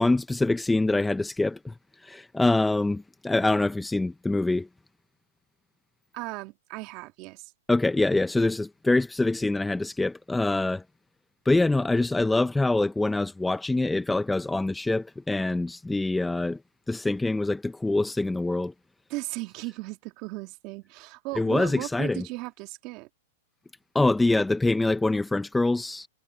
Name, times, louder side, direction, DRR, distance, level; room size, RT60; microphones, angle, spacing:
voice 1, 0.0-1.7 2.0-4.7 7.7-10.8 11.5-16.6 16.9-18.7 21.4-22.2 23.9-26.1, left 2 dB, 5° left, 0.7 m, -25 dB
voice 2, 6.1-7.5 19.1-23.1, right 22 dB, 40° right, 2.4 m, -36 dB
hypercardioid pair, 145°, 0 cm